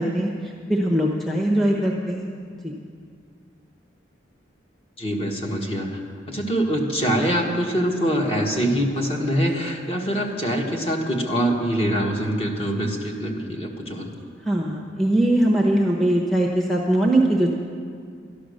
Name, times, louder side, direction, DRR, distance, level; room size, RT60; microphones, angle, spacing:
voice 1, 0.0-2.3 2.6-2.7 14.4-17.5, right 1 dB, ahead, -1 dB, 0.9 m, -21 dB
voice 2, 5.0-6.0 6.3-14.3, equal, 30° left, 0 dB, 1.5 m, -24 dB
13.0 x 11.0 x 6.5 m, 2.2 s
head